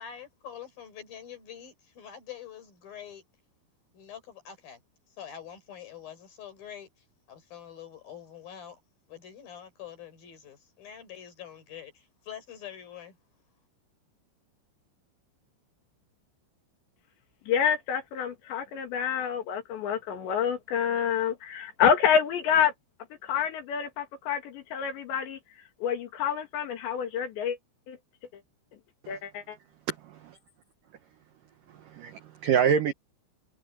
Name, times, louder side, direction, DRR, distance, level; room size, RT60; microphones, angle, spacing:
voice 1, 0.0-3.2 3.9-4.8 5.2-8.8 9.1-13.2, left 9 dB, 50° left, 6.1 m, -45 dB
voice 2, 17.5-22.7 23.2-25.4 25.8-27.6 27.9-28.0 29.1-29.6, left 8 dB, 70° left, 4.3 m, -27 dB
voice 3, 29.9-30.4 31.8-32.9, right 8 dB, 80° right, 1.9 m, -26 dB
omnidirectional pair, 5.5 m